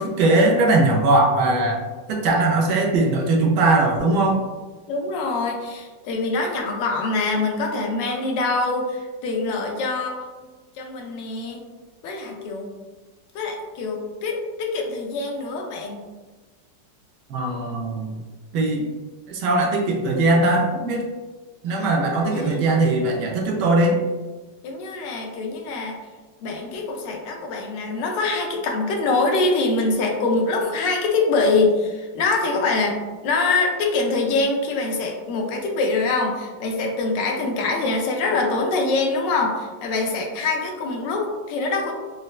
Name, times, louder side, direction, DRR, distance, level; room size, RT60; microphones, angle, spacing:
voice 1, 0.0-4.4 17.3-18.2 18.5-18.9 19.3-21.1 21.6-24.0, right 2 dB, 75° right, -1 dB, 1.2 m, -20 dB
voice 2, 4.9-10.3 10.8-11.6 12.0-12.7 13.3-16.0 21.8-22.7 24.6-26.0 26.4-41.9, left 3 dB, 85° left, 1 dB, 1.3 m, -24 dB
4.2 x 2.1 x 2.3 m, 1.3 s
omnidirectional pair, 1.9 m